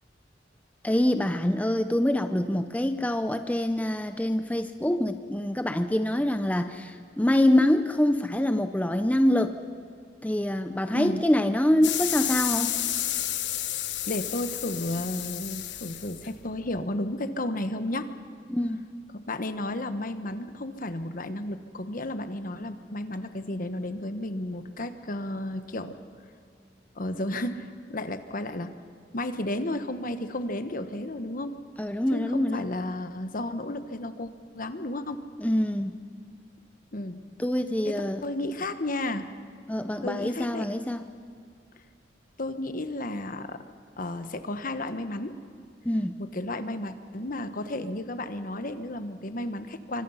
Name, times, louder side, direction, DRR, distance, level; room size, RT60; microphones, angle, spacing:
voice 1, 0.8-9.5 10.2-12.8 18.5-18.8 31.8-32.7 35.4-36.0 37.4-38.2 39.7-41.0 45.8-46.2, left 1 dB, 10° left, 8 dB, 0.6 m, -25 dB
sound 1, 11.8-16.8, left 12 dB, 85° left, 1.3 m, -31 dB
voice 2, 14.1-18.1 19.3-26.0 26.9-28.7 29.1-31.5 32.1-35.2 36.9-37.2 37.8-39.3 40.0-40.7 42.4-43.6 44.0-45.4 46.2-50.0, left 1 dB, 50° left, 10 dB, 1.2 m, -33 dB
26.0 x 24.5 x 5.7 m, 2.3 s
head